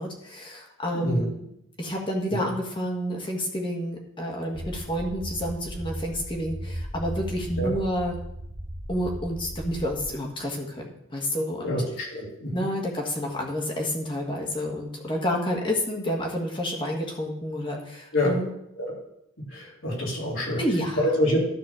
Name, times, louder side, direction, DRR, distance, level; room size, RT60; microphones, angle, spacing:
voice 1, 0.0-1.5 1.8-8.2 8.9-11.8 12.5-18.5 20.6-21.0, equal, 25° left, 0 dB, 1.6 m, -29 dB
voice 2, 0.9-1.3 2.3-2.4 7.6-7.7 11.6-12.7 18.1-18.4 18.8-18.9 19.5-20.6 21.0-21.4, left 1 dB, 85° left, -5 dB, 3.8 m, -26 dB
sound 1, 4.5-10.1, equal, 40° right, 2.6 m, -36 dB
12.5 x 4.2 x 5.9 m, 0.78 s
head